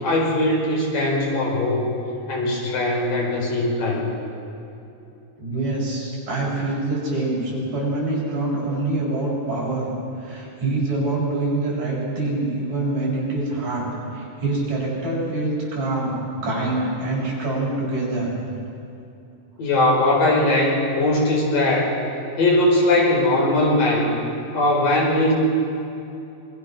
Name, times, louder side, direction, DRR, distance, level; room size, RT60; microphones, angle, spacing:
voice 1, 0.0-1.9 2.3-4.1 19.6-21.9 22.4-24.1 24.5-25.3, left 1 dB, 80° left, -2 dB, 6.4 m, -20 dB
voice 2, 5.4-9.9 10.2-13.9 14.1-16.1 16.4-18.3, right 2 dB, 55° right, -6 dB, 8.4 m, -25 dB
26.0 x 21.5 x 6.3 m, 2.8 s
omnidirectional pair, 3.9 m